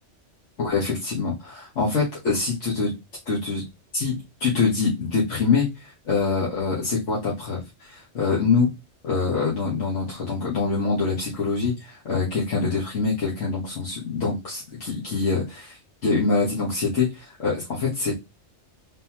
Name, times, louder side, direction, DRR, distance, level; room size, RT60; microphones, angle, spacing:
voice 1, 0.6-2.9 3.2-3.7 3.9-8.7 9.0-15.8 16.0-18.1, left 4 dB, 80° left, -6 dB, 1.7 m, -25 dB
3.8 x 3.8 x 2.9 m, 0.23 s
omnidirectional pair, 1.2 m